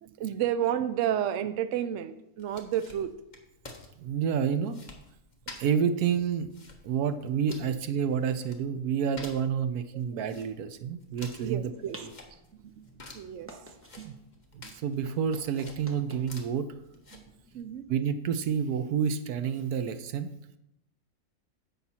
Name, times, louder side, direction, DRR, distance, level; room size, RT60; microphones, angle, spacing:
voice 1, 0.0-3.1 11.4-12.0 12.5-12.9 13.1-13.5 14.0-14.2 14.6-14.7 17.1-17.2 17.5-17.8, right 10 dB, 65° right, 11 dB, 0.9 m, -31 dB
sound 1, 2.4-17.6, left 2 dB, 30° left, 1.3 m, -51 dB
voice 2, 4.0-4.8 5.6-6.5 6.8-11.6 12.0-12.1 14.0-14.1 14.5-16.7 17.9-20.6, right 7 dB, 85° right, 11 dB, 1.2 m, -29 dB
sound 2, 11.2-18.7, right 1 dB, 10° right, 1.0 m, -53 dB
10.5 x 7.5 x 4.3 m, 0.83 s
omnidirectional pair, 1.6 m